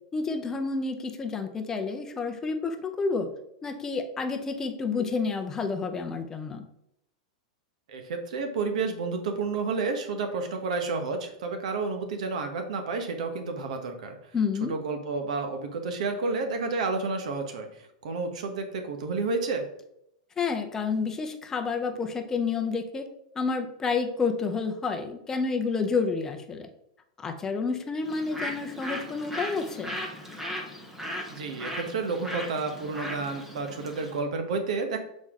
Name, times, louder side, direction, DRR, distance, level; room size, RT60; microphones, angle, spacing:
voice 1, 0.1-3.3 3.6-6.6 14.3-14.7 20.4-23.1 23.4-26.7 27.2-30.0, left 4 dB, 15° left, 5 dB, 0.6 m, -29 dB
voice 2, 7.9-14.2 14.7-17.7 18.0-19.6 31.3-35.0, right 4 dB, 75° right, 6 dB, 1.2 m, -30 dB
Bird, 28.0-34.2, equal, 5° right, 1.0 m, -37 dB
6.9 x 4.2 x 3.7 m, 0.79 s
supercardioid pair, 160°, 4 cm